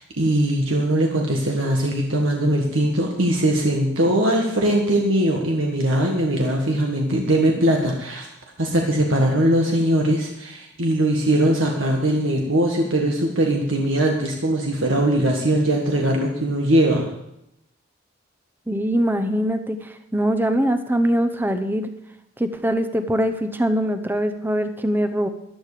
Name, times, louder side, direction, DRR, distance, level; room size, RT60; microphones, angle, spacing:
voice 1, 0.0-8.3 8.6-17.1, right 1 dB, 80° right, 0 dB, 1.7 m, -20 dB
voice 2, 18.7-21.9 22.4-25.3, equal, 10° right, 8 dB, 0.8 m, -22 dB
14.5 x 11.0 x 5.0 m, 0.82 s
head